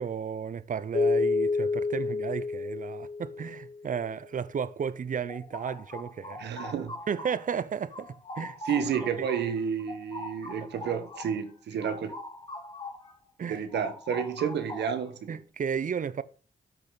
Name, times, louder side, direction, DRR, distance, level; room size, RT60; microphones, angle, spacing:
voice 1, 0.0-6.4 7.1-8.6 9.2-9.3 13.4-13.6 15.3-16.2, right 7 dB, 50° right, 0.7 m, -33 dB
Keyboard (musical), 0.9-3.9, left 4 dB, 50° left, 1.2 m, -29 dB
sound 1, 5.3-7.6 7.9-13.1 13.4-15.2, left 2 dB, 30° left, 2.7 m, -42 dB
voice 2, 6.4-6.9 8.6-12.1 13.5-15.4, right 7 dB, 85° right, 1.4 m, -30 dB
12.0 x 6.2 x 4.0 m
cardioid pair, 60°, 17 cm